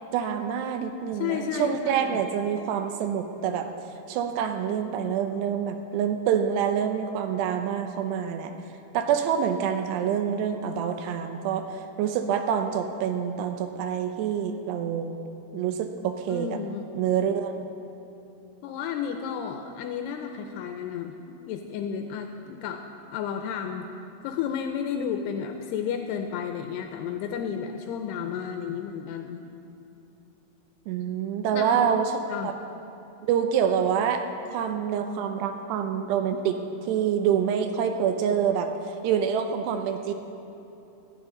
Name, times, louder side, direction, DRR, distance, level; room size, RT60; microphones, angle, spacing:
voice 1, 0.1-3.7 4.1-8.5 8.9-11.7 12.0-15.2 15.5-16.6 17.0-17.6 30.9-32.1 32.4-32.5 33.2-40.1, right 8 dB, 85° right, 7 dB, 2.9 m, -26 dB
voice 2, 1.1-2.2 16.3-16.9 18.6-21.2 21.5-22.8 23.1-23.9 24.2-29.4 31.5-31.9 32.3-32.6, left 7 dB, 85° left, 4 dB, 2.6 m, -32 dB
17.5 x 14.5 x 3.8 m, 2.9 s
omnidirectional pair, 4.8 m